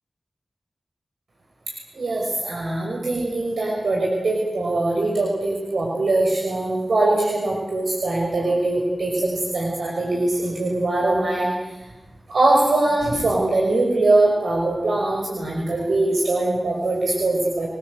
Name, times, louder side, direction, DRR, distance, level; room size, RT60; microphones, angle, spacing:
voice 1, 1.9-11.7 12.3-17.7, right 2 dB, 85° right, -2 dB, 5.8 m, -22 dB
29.5 x 20.5 x 8.1 m, 1.0 s
cardioid pair, 40°, 0 cm